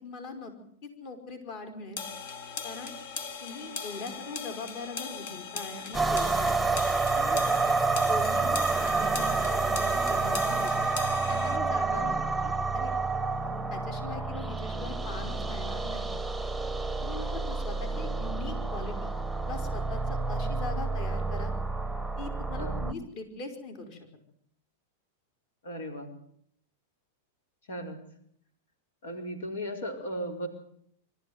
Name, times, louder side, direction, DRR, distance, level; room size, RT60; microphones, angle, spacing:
voice 1, 0.0-0.5 1.0-2.0 2.6-3.0 3.4-6.6 7.1-7.4 8.1-10.7 11.3-12.1 12.4-12.9 13.7-16.1 17.0-19.1 19.4-21.5 22.2-24.1, left 3 dB, 45° left, 5 dB, 4.9 m, -41 dB
sound 1, 2.0-11.6, left 5 dB, 70° left, 2.7 m, -39 dB
sound 2, 5.9-22.9, right 3 dB, ahead, 0.9 m, -29 dB
voice 2, 11.9-12.3 22.6-22.9 25.6-26.1 27.7-28.0 29.0-30.5, equal, 85° left, 6 dB, 4.8 m, -36 dB
24.5 x 14.0 x 9.5 m, 0.67 s
supercardioid pair, 140°, 0 cm